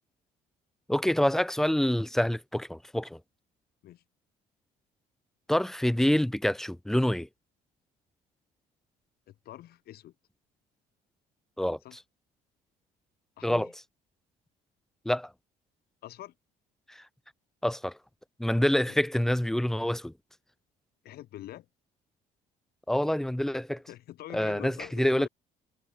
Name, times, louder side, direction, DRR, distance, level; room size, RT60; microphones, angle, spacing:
voice 1, 0.9-3.2 5.5-7.3 11.6-11.8 13.4-13.7 15.1-15.3 16.9-17.0 17.6-18.0 18.4-20.1 22.9-23.8 24.3-25.3, left 1 dB, ahead, 0.4 m, -26 dB
voice 2, 9.3-10.1 11.8-12.0 13.4-13.7 16.0-16.3 18.9-19.0 21.0-21.7 23.9-25.3, left 14 dB, 70° left, 1.7 m, -44 dB
cardioid pair, 110°, 17 cm